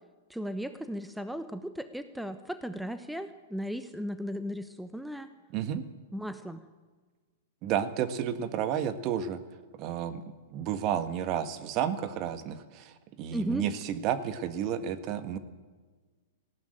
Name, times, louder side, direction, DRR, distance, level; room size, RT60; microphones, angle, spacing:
voice 1, 0.3-5.3 6.1-6.6 13.3-13.7, equal, ahead, 10 dB, 1.0 m, -36 dB
voice 2, 5.5-5.8 7.6-9.4 9.8-10.2 10.5-15.4, right 9 dB, 40° right, 10 dB, 1.6 m, -31 dB
19.0 x 16.0 x 9.0 m, 1.4 s
figure-of-eight pair, 105°, 0 cm